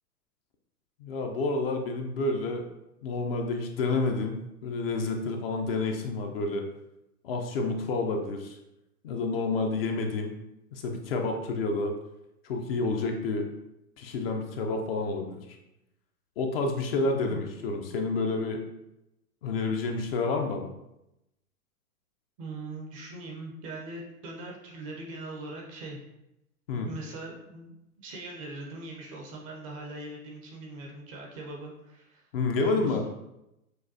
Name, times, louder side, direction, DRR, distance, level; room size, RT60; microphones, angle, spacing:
voice 1, 1.0-2.7 3.0-6.6 7.2-8.6 9.0-10.4 10.7-11.9 12.4-13.5 14.0-15.6 16.4-18.6 19.4-20.7 26.7-26.9 32.3-33.0, left 3 dB, 40° left, 3 dB, 0.5 m, -29 dB
voice 2, 22.4-26.0 26.7-32.3 32.6-33.1, right 2 dB, 25° right, -1 dB, 0.4 m, -41 dB
6.3 x 2.2 x 2.6 m, 0.88 s
hypercardioid pair, 125°, 46 cm